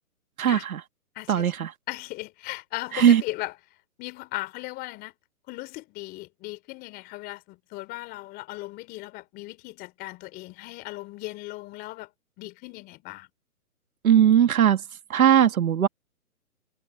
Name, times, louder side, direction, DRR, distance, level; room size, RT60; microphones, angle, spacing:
voice 1, 0.4-0.8 1.3-1.7 2.9-3.2 14.0-14.8 15.1-15.9, right 9 dB, 65° right, 2.0 m, -19 dB
voice 2, 1.2-1.5 1.9-3.6 4.0-5.1 5.5-12.1 12.4-13.3, left 19 dB, 20° left, 3.6 m, -37 dB
hypercardioid pair, 150°, 45 cm